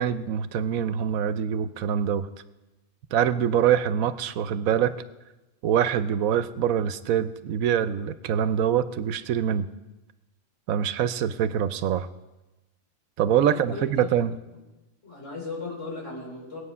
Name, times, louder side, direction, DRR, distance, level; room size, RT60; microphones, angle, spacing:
voice 1, 0.0-2.3 3.1-4.9 5.6-9.7 10.7-12.1 13.2-14.3, right 9 dB, 80° right, 13 dB, 1.1 m, -24 dB
voice 2, 13.4-14.1 15.0-16.6, left 3 dB, 60° left, -2 dB, 4.2 m, -36 dB
18.5 x 8.5 x 5.5 m, 1.1 s
omnidirectional pair, 1.4 m